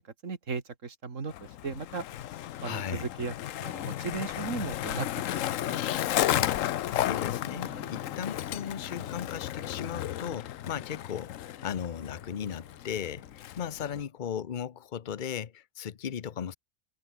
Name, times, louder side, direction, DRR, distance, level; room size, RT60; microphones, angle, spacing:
voice 1, 0.0-2.0 2.6-5.1 5.3-5.8, right 5 dB, 75° right, 2.5 m, -37 dB
Skateboard, 1.3-14.0, left 12 dB, 80° left, 1.1 m, -33 dB
voice 2, 2.6-3.1 6.3-6.5 6.9-16.6, left 8 dB, 45° left, 0.9 m, -36 dB
Bowed string instrument, 7.5-13.5, equal, 10° right, 5.2 m, -55 dB
omnidirectional pair, 1.3 m